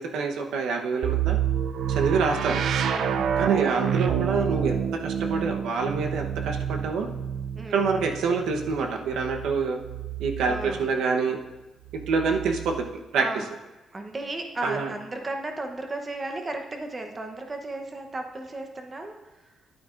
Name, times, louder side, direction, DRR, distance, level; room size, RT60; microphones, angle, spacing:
voice 1, 0.0-1.4 1.9-2.6 3.4-7.1 7.7-9.8 10.2-11.4 12.1-12.8 13.1-13.2 14.6-14.9, right 5 dB, 90° right, 3 dB, 0.9 m, -26 dB
sound 1, 1.0-10.8 11.9-12.9, right 8 dB, 55° right, 0.4 m, -29 dB
voice 2, 2.9-3.4 7.6-8.0 10.4-10.9 13.2-13.5 13.9-19.5, right 2 dB, 20° right, 4 dB, 0.8 m, -35 dB
11.0 x 9.0 x 2.5 m, 1.1 s
cardioid pair, 170°, 0 cm